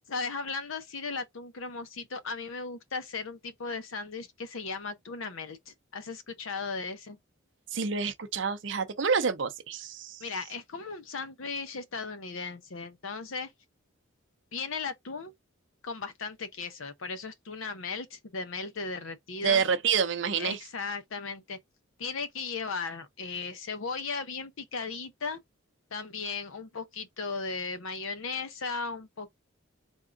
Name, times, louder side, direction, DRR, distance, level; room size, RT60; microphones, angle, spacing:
voice 1, 0.1-7.2 10.2-13.5 14.5-15.3 15.8-19.6 20.4-21.6 22.0-25.4 25.9-29.3, left 4 dB, 75° left, 0.7 m, -36 dB
voice 2, 7.7-10.2 19.4-20.6, right 6 dB, 60° right, 0.6 m, -28 dB
3.6 x 2.3 x 3.7 m
head